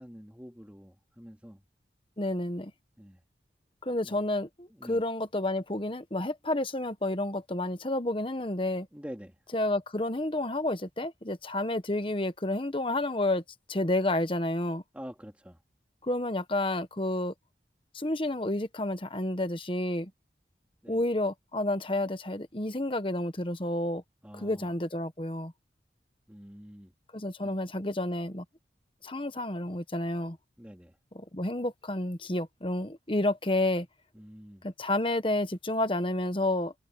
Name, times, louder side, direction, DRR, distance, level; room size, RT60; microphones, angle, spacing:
voice 1, 0.0-1.6 3.0-3.2 4.0-4.2 4.7-5.0 8.9-9.4 14.9-15.6 20.8-21.0 24.2-24.7 26.3-26.9 27.4-27.6 30.6-31.0 34.1-34.6, equal, 10° right, 2.9 m, -46 dB
voice 2, 2.2-2.7 3.8-8.9 9.5-13.4 13.7-14.8 16.0-17.3 17.9-20.1 20.9-24.0 24.3-25.5 27.1-28.4 29.0-30.4 31.1-33.9 34.6-36.7, left 1 dB, 30° left, 1.2 m, -30 dB
head